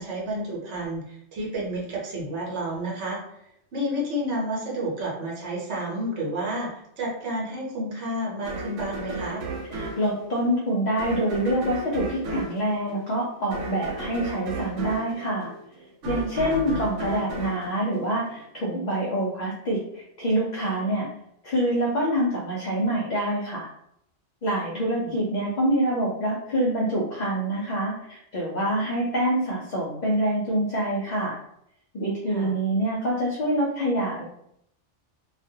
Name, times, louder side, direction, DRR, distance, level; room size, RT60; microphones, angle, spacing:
voice 1, 0.0-3.2 3.7-9.4 16.4-16.6 24.7-25.1 32.3-32.5, right 1 dB, 70° right, -3 dB, 1.0 m, -31 dB
sound 1, 8.5-18.7, right 2 dB, 90° right, 0.9 m, -34 dB
voice 2, 9.7-15.5 16.0-21.1 21.4-23.7 24.4-31.4 31.9-34.2, right 1 dB, 55° left, -4 dB, 0.5 m, -26 dB
2.4 x 2.1 x 2.6 m, 0.73 s
omnidirectional pair, 1.2 m